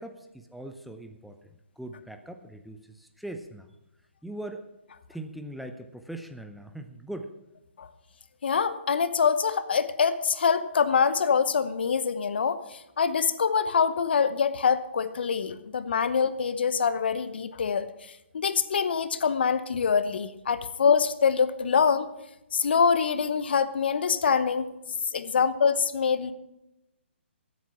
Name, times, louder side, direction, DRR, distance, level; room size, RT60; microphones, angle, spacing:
voice 1, 0.0-1.5 1.8-3.7 4.2-4.6 5.1-7.3, right 1 dB, ahead, 6 dB, 0.6 m, -40 dB
voice 2, 8.4-22.1 22.5-24.7 25.1-26.3, left 6 dB, 60° left, 13 dB, 0.9 m, -25 dB
15.0 x 8.4 x 5.8 m, 0.91 s
figure-of-eight pair, 135°, 6 cm